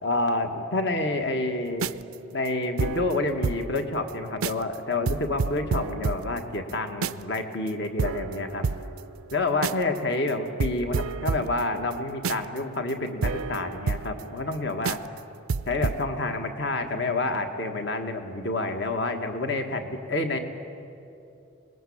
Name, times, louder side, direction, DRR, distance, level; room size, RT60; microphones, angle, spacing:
voice 1, 0.0-1.9 2.3-8.7 9.3-15.0 15.7-20.4, left 2 dB, 55° left, 6 dB, 1.6 m, -28 dB
sound 1, 1.7-3.8 4.1-4.2 4.4-4.8 5.1-7.4 7.7-7.8 8.0-10.0 10.3-10.4 10.6-14.6 14.8-15.2 15.5-16.0, right 4 dB, 90° right, 0.5 m, -30 dB
26.0 x 20.5 x 8.7 m, 2.7 s
head